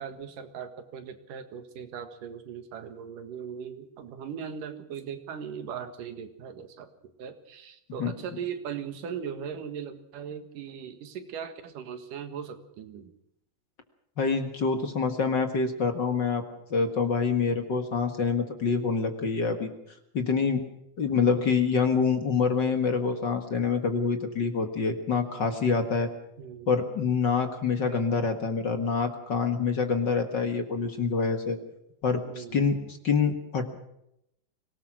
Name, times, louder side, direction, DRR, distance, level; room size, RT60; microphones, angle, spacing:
voice 1, 0.0-13.1 21.1-21.6 26.4-26.8 27.8-28.4 32.3-32.9, right 7 dB, 85° right, 9 dB, 3.3 m, -39 dB
voice 2, 14.2-16.4 16.7-19.7 20.1-20.6 21.0-26.1 26.7-31.6 32.0-33.7, left 5 dB, 40° left, 6 dB, 1.9 m, -26 dB
24.0 x 18.0 x 6.3 m, 0.80 s
omnidirectional pair, 3.7 m